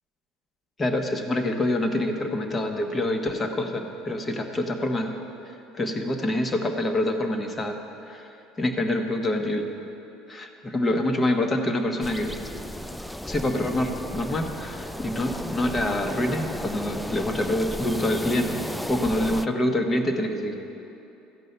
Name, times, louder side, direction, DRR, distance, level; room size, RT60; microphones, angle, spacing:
voice 1, 0.8-5.1 5.7-7.8 8.1-9.7 10.3-12.3 13.3-20.5, left 1 dB, 25° left, 4 dB, 1.2 m, -26 dB
sound 1, 12.0-19.5, equal, 5° left, 0.4 m, -34 dB
14.0 x 5.4 x 6.7 m, 2.9 s
hypercardioid pair, 70°, 0 cm